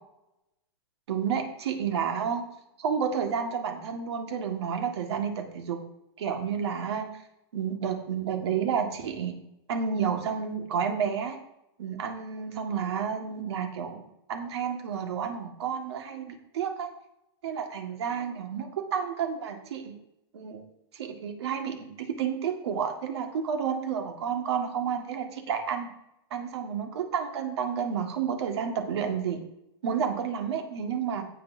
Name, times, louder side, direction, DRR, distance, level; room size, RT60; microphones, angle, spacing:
voice 1, 1.1-2.4 2.8-5.8 6.2-7.1 7.5-9.3 9.7-11.4 11.8-14.0 14.3-16.9 17.4-19.9 20.3-20.6 20.9-25.9 26.3-29.4 29.8-31.2, right 7 dB, 75° right, 3 dB, 1.8 m, -30 dB
17.0 x 6.1 x 2.7 m, 0.83 s
hypercardioid pair, 120°, 14 cm